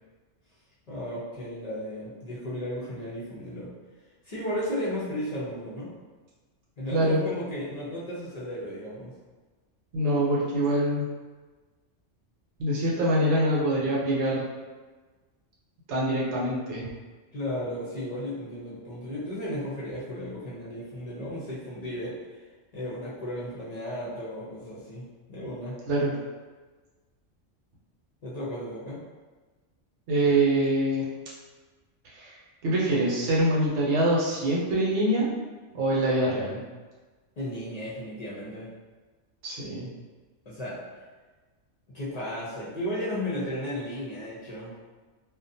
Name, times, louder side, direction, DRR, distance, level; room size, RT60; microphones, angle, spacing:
voice 1, 0.9-3.7 4.2-5.9 6.8-9.1 17.3-22.1 22.7-25.8 28.2-29.0 37.4-38.7 40.5-40.8 41.9-44.7, equal, 45° left, -8 dB, 0.5 m, -34 dB
voice 2, 6.9-7.2 9.9-11.1 12.6-14.5 15.9-16.9 25.9-26.2 30.1-31.1 32.1-32.3 32.6-35.3 35.7-36.6 39.4-39.9, right 1 dB, 70° right, -5 dB, 1.0 m, -24 dB
2.4 x 2.2 x 2.6 m, 1.3 s
omnidirectional pair, 1.3 m